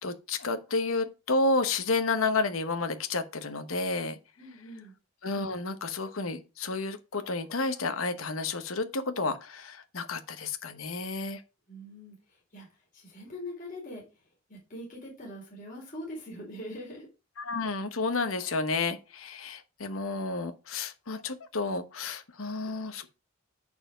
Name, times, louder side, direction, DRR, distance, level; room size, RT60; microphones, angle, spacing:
voice 1, 0.0-4.2 5.2-11.4 17.4-23.1, left 3 dB, 75° left, 1.1 m, -31 dB
voice 2, 4.4-4.9 11.7-17.1, left 1 dB, 40° left, 3.9 m, -43 dB
9.7 x 4.6 x 5.0 m
head